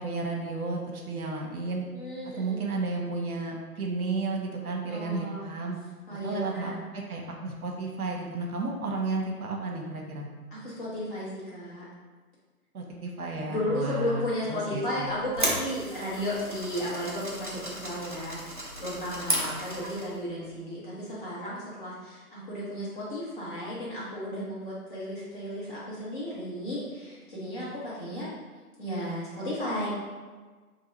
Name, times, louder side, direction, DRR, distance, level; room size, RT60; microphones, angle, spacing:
voice 1, 0.0-1.8 2.4-5.8 6.1-10.3 12.7-15.1, right 3 dB, 65° right, 0 dB, 0.9 m, -33 dB
voice 2, 1.9-2.7 4.9-5.4 6.1-6.8 10.5-11.9 13.5-28.3 28.8-29.9, equal, 35° left, -8 dB, 1.3 m, -34 dB
sound 1, 15.0-20.2, right 1 dB, 35° right, 0.4 m, -34 dB
4.7 x 2.6 x 2.8 m, 1.4 s
figure-of-eight pair, 150°, 47 cm